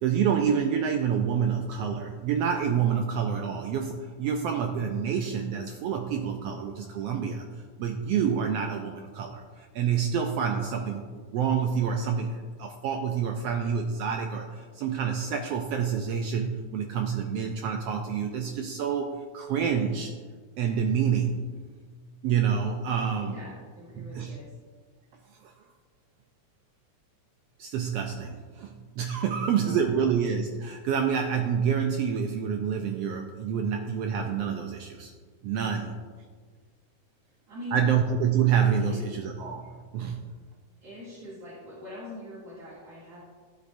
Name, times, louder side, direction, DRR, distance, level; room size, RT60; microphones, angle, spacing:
voice 1, 0.0-7.4 7.8-20.1 20.6-21.5 22.2-23.4 24.0-24.4 25.4-25.5 27.6-35.1 35.4-36.0 37.7-40.3, right 7 dB, 85° right, 3 dB, 1.4 m, -28 dB
voice 2, 23.2-24.6 29.4-30.1 37.5-37.9 38.8-39.0 40.8-43.2, left 1 dB, 55° right, -10 dB, 3.5 m, -42 dB
15.0 x 8.1 x 2.6 m, 1.6 s
omnidirectional pair, 3.5 m